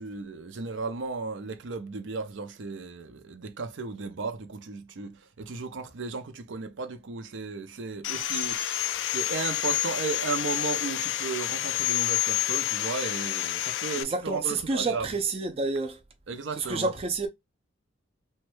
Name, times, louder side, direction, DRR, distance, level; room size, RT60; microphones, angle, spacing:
voice 1, 0.0-15.1 16.3-16.9, right 4 dB, 80° right, 0.6 m, -35 dB
Sawing, 8.0-14.0, left 14 dB, 75° left, 0.3 m, -29 dB
voice 2, 14.0-16.0 16.6-17.3, right 3 dB, 30° right, 0.4 m, -29 dB
3.1 x 2.2 x 3.0 m
head